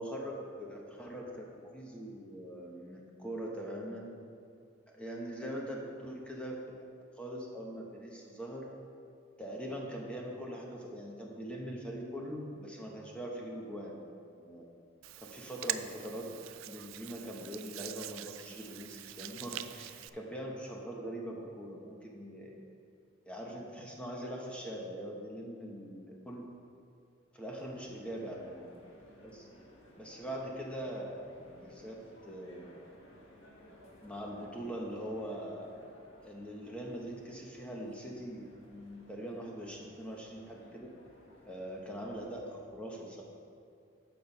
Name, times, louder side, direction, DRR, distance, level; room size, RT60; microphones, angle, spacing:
voice 1, 0.0-4.1 4.9-6.8 7.2-8.6 9.4-14.0 14.4-14.6 15.2-16.3 16.7-22.5 23.2-26.5 27.3-28.7 29.2-31.9 32.2-32.6 34.0-35.7 36.2-40.9 41.5-43.2, equal, 5° left, -2 dB, 1.1 m, -42 dB
Hands, 15.0-20.1, right 13 dB, 90° right, 0.3 m, -43 dB
sound 1, 27.5-42.6, left 1 dB, 85° left, 1.6 m, -59 dB
9.3 x 6.0 x 5.4 m, 2.4 s
head